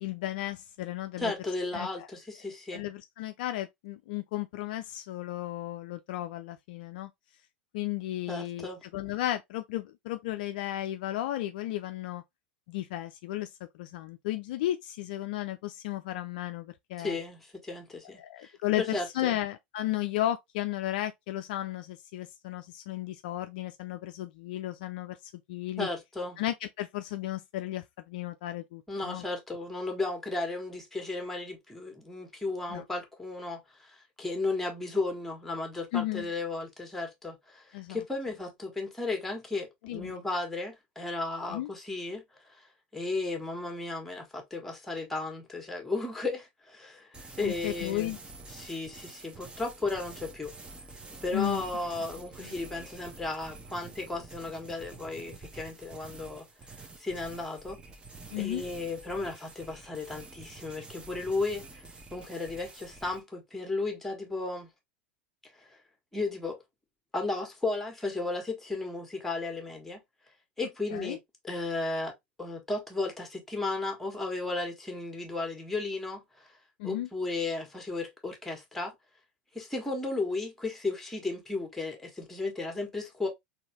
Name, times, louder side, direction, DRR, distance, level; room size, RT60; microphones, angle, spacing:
voice 1, 0.0-1.3 1.7-1.9 2.7-7.1 7.7-12.2 12.7-13.5 13.8-17.2 18.2-25.2 25.5-25.9 26.4-29.2 32.7-32.8 35.9-36.3 37.7-38.0 39.8-40.2 41.5-41.7 47.4-48.2 51.3-51.6 52.4-52.5 58.3-58.6 70.9-71.2 76.8-77.1, left 14 dB, 55° left, 0.4 m, -34 dB
voice 2, 1.2-2.8 8.3-8.8 17.0-18.5 18.8-19.4 25.8-26.4 28.9-37.6 37.9-42.2 42.9-48.1 48.5-50.5 51.2-56.5 57.0-57.8 58.4-64.7 65.6-65.7 66.1-66.6 67.1-70.0 70.6-71.2 71.4-76.5 76.8-78.9 79.5-83.3, left 3 dB, 5° left, 1.5 m, -34 dB
sound 1, 47.1-63.2, right 3 dB, 15° right, 0.9 m, -48 dB
3.9 x 2.8 x 3.0 m
figure-of-eight pair, 85°, 6 cm